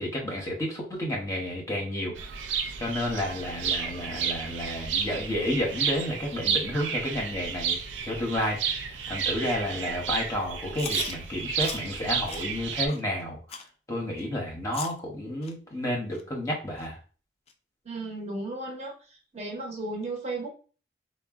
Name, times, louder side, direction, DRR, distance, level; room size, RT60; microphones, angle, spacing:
voice 1, 0.0-2.1 2.8-7.8 8.0-8.6 9.1-13.4 13.9-17.0, left 1 dB, 15° left, -1 dB, 0.7 m, -31 dB
sound 1, 2.2-12.9, right 6 dB, 85° right, 0.4 m, -32 dB
Chewing mastication, 10.7-11.1 11.6-11.8 12.3-12.4 12.9-13.0 13.5-13.7 14.2-14.3 14.7-15.0 15.4-15.5 16.1-16.2 16.8-16.9 17.5-17.6, left 6 dB, 35° left, 0.3 m, -38 dB
voice 2, 17.8-19.0 19.3-20.5, right 2 dB, 40° right, 0 dB, 0.8 m, -34 dB
3.7 x 2.1 x 2.3 m, 0.37 s
head